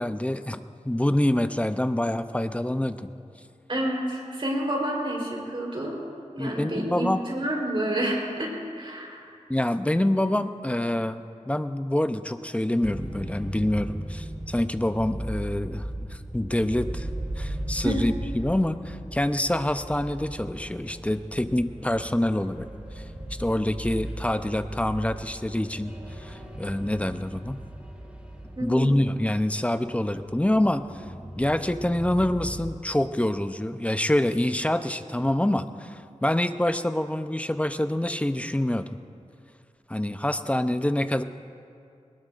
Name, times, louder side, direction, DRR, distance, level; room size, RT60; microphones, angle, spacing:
voice 1, 0.0-3.1 6.4-7.2 9.5-17.1 17.4-22.7 23.0-23.1 23.4-27.6 28.6-31.0 31.4-38.9 39.9-41.2, left 1 dB, 10° left, 10 dB, 0.5 m, -26 dB
voice 2, 3.7-6.0 6.3-9.3 17.8-18.0 28.5-28.9, right 1 dB, 45° right, -1 dB, 3.7 m, -29 dB
sound 1, 12.8-32.6, right 1 dB, 10° right, 2.7 m, -37 dB
21.0 x 19.0 x 2.5 m, 2.4 s
wide cardioid pair, 80°, 12 cm